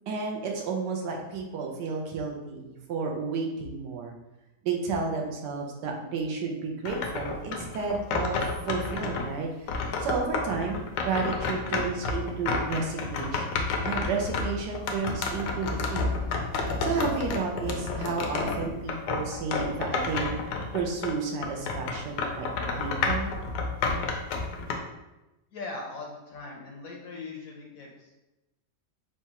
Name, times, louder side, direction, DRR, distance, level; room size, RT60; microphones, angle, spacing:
voice 1, 0.1-4.1 4.6-8.4 8.7-9.5 10.0-13.6 13.8-16.1 16.8-20.4 20.7-23.3, right 4 dB, 80° right, 0 dB, 1.3 m, -32 dB
sound 1, 6.9-9.3 9.7-21.2 21.4-24.8, left 4 dB, 80° left, 1.2 m, -30 dB
voice 2, 25.5-28.1, left 3 dB, 65° left, 0 dB, 0.9 m, -40 dB
5.9 x 2.3 x 2.9 m, 1.0 s
omnidirectional pair, 1.8 m